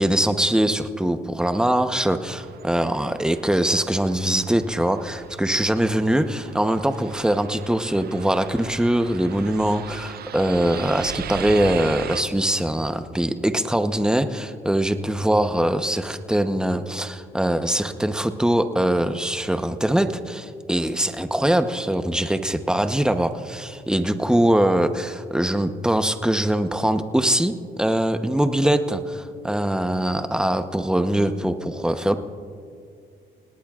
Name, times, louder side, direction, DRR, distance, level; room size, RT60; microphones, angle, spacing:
voice 1, 0.0-32.2, right 1 dB, 5° right, 8 dB, 0.9 m, -22 dB
sound 1, 2.3-12.2, right 9 dB, 55° right, 0.5 m, -39 dB
29.0 x 18.5 x 2.5 m, 2.2 s
cardioid pair, 90°, 20 cm